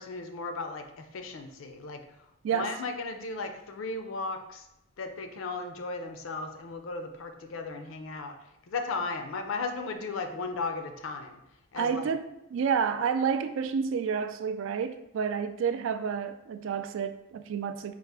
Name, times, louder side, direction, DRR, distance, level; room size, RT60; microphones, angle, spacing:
voice 1, 0.0-2.1 2.5-4.7 5.0-8.4 8.7-11.4 11.7-12.1, left 3 dB, 80° left, 0.5 m, -36 dB
voice 2, 11.8-17.9, right 6 dB, 75° right, 0.3 m, -30 dB
4.7 x 2.4 x 3.3 m
head